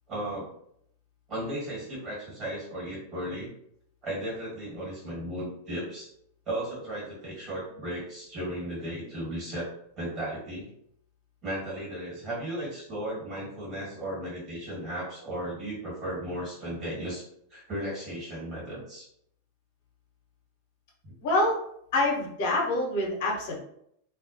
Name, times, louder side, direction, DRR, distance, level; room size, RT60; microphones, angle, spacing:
voice 1, 0.1-0.5 1.3-3.5 4.0-6.1 6.4-9.7 10.0-10.7 11.4-17.2 17.5-19.1 21.0-21.1, right 1 dB, 30° right, -4 dB, 1.4 m, -35 dB
voice 2, 21.2-21.6 21.9-23.6, left 2 dB, 50° left, -2 dB, 0.8 m, -26 dB
2.3 x 2.2 x 2.7 m, 0.70 s
figure-of-eight pair, 90°, 0 cm